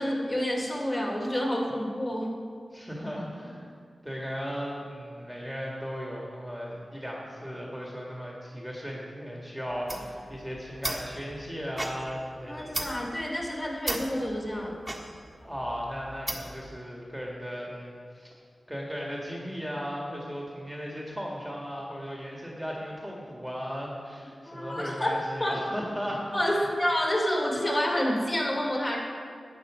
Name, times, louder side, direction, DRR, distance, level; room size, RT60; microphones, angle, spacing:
voice 1, 0.0-2.3 12.5-14.7 24.5-25.1 25.4-25.6 26.3-29.0, equal, 35° left, -2 dB, 2.7 m, -28 dB
voice 2, 2.7-3.7 4.0-12.9 15.4-18.3 18.7-26.7, equal, ahead, -3 dB, 2.0 m, -36 dB
sound 1, 9.7-16.7, right 1 dB, 20° right, 1.5 m, -37 dB
11.5 x 8.6 x 5.1 m, 2.1 s
cardioid pair, 60°, 0 cm